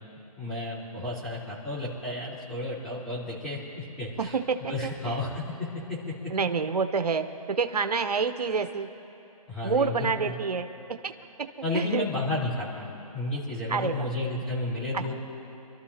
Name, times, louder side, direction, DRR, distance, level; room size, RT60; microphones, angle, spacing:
voice 1, 0.4-4.4 4.7-6.0 9.5-10.3 11.6-12.9 13.1-15.1, left 2 dB, ahead, -10 dB, 3.8 m, -32 dB
voice 2, 4.2-5.1 6.3-8.9 9.6-10.7 11.0-11.1 11.7-12.0 13.7-14.1 14.9-15.1, right 5 dB, 85° right, 8 dB, 0.9 m, -28 dB
27.5 x 13.0 x 2.9 m, 2.9 s
hypercardioid pair, 155°, 20 cm